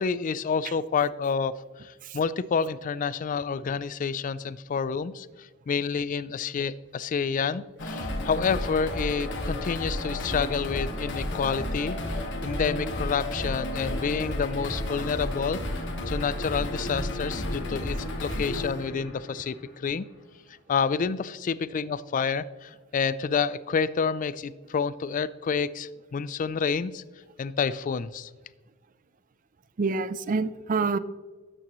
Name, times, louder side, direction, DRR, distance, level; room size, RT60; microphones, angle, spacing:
voice 1, 0.0-1.6 1.8-12.0 12.4-15.6 16.1-20.1 20.7-27.0 27.4-28.3, left 6 dB, 40° left, 17 dB, 0.3 m, -29 dB
sound 1, 7.8-19.8, left 1 dB, 60° left, 1.5 m, -32 dB
voice 2, 29.8-31.0, right 4 dB, 40° right, 15 dB, 0.4 m, -27 dB
12.5 x 8.7 x 3.0 m, 1.3 s
head